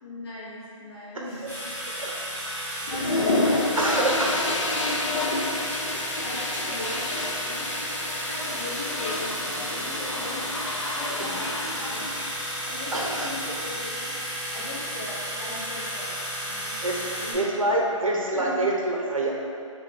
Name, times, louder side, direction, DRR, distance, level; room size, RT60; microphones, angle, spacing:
voice 1, 0.0-1.5 1.8-2.2 2.8-4.2 4.8-5.2 6.1-7.7 8.2-10.5 10.8-12.1 12.6-14.2 14.5-16.8 17.2-18.0 18.3-18.7, left 1 dB, 50° left, -9 dB, 1.4 m, -38 dB
sound 1, 1.5-17.3, equal, 5° right, 0.8 m, -33 dB
sound 2, 2.9-13.9, left 2 dB, 65° left, 0.5 m, -30 dB
voice 2, 3.8-4.3 12.9-13.3 16.8-17.1 17.3-19.3, right 2 dB, 90° right, -1 dB, 0.8 m, -26 dB
3.4 x 3.1 x 3.5 m, 2.4 s
figure-of-eight pair, 160°, 17 cm